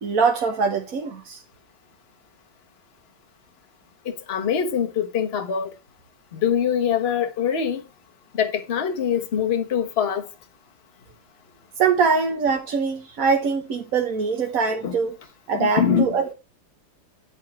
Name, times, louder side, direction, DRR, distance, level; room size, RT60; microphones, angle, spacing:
voice 1, 0.0-1.4 11.8-15.1 15.5-16.3, right 5 dB, 50° right, 1.2 m, -23 dB
voice 2, 4.0-5.7 6.3-7.8 8.3-10.3 14.8-15.0 15.6-16.1, left 8 dB, 35° left, 1.2 m, -23 dB
11.0 x 4.7 x 5.8 m
omnidirectional pair, 2.4 m